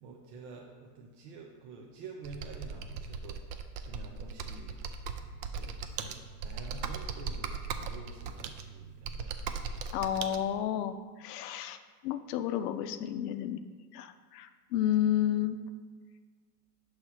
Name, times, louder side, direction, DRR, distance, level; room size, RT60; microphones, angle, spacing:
voice 1, 0.0-4.8 5.2-9.4, right 3 dB, 75° right, 0 dB, 0.8 m, -49 dB
Computer keyboard, 2.2-10.4, right 5 dB, 50° right, 0.5 m, -38 dB
voice 2, 9.9-11.8 12.0-13.6 13.9-15.6, left 11 dB, 90° left, 9 dB, 0.5 m, -31 dB
5.8 x 3.2 x 5.6 m, 1.5 s
supercardioid pair, 115°, 46 cm